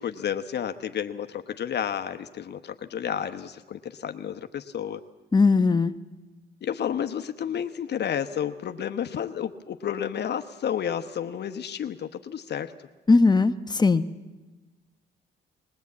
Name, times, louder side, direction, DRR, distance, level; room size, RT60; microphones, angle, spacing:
voice 1, 0.0-5.0 6.6-12.7, left 9 dB, 60° left, 7 dB, 1.0 m, -31 dB
voice 2, 5.3-5.9 13.1-14.0, left 3 dB, 20° left, 9 dB, 1.0 m, -19 dB
21.0 x 20.0 x 8.5 m, 1.2 s
cardioid pair, 90°, 20 cm